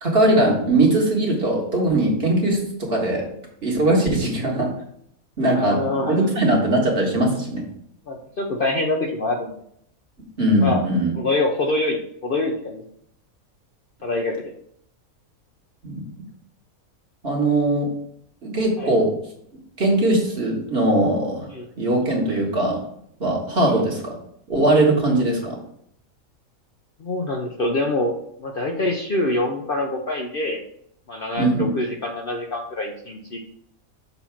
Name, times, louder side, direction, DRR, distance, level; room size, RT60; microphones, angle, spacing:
voice 1, 0.0-3.3 3.6-4.7 5.4-7.6 10.4-11.1 15.8-16.1 17.2-17.9 18.4-19.1 19.8-21.5 21.8-22.8 23.2-24.1 24.5-25.6 31.4-31.7, right 1 dB, 45° right, -2 dB, 1.8 m, -20 dB
voice 2, 5.5-6.3 8.1-9.5 10.6-10.8 11.1-12.8 14.0-14.5 18.8-18.9 21.5-21.6 23.7-23.8 27.0-28.1 28.4-30.6 31.1-33.4, left 2 dB, 50° left, 1 dB, 0.7 m, -25 dB
6.9 x 2.9 x 5.7 m, 0.70 s
omnidirectional pair, 1.5 m